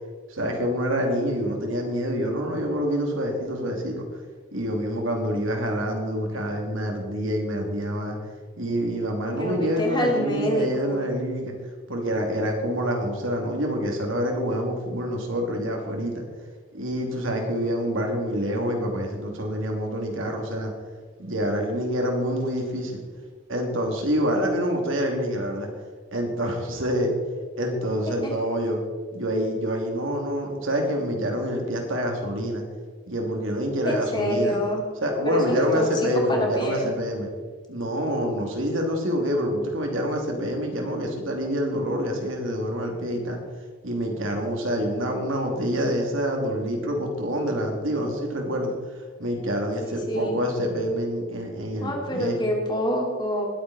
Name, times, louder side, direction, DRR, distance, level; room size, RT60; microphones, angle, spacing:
voice 1, 0.3-4.1 4.5-8.2 8.6-11.5 11.9-16.2 16.7-20.7 21.2-23.0 23.5-25.7 26.1-27.1 27.6-28.8 29.1-32.6 33.1-34.6 35.0-37.3 37.7-43.4 43.8-52.4, equal, 70° right, 2 dB, 2.7 m, -27 dB
voice 2, 9.2-11.0 28.2-28.3 33.8-34.8 35.2-36.9 49.8-50.4 51.8-53.5, equal, 20° left, 1 dB, 2.4 m, -27 dB
20.0 x 9.3 x 4.2 m, 1.5 s
head